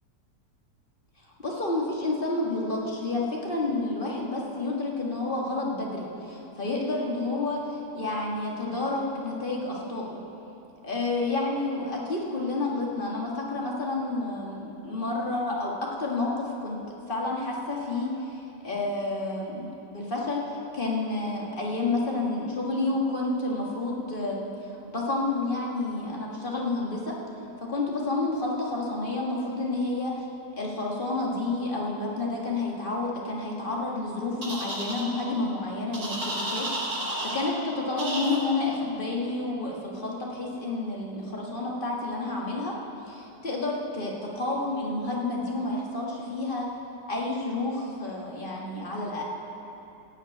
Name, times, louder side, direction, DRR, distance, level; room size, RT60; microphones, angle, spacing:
voice 1, 1.4-10.2 10.8-16.8 17.1-24.4 24.7-27.2 27.6-30.3 30.6-37.0 37.3-42.8 43.1-46.7 47.1-49.2, left 2 dB, 30° left, -2 dB, 1.9 m, -30 dB
sound 1, 34.4-35.0 35.9-37.5 38.0-38.4, right 1 dB, 60° right, 3.0 m, -31 dB
16.0 x 5.8 x 8.5 m, 2.9 s
omnidirectional pair, 1.8 m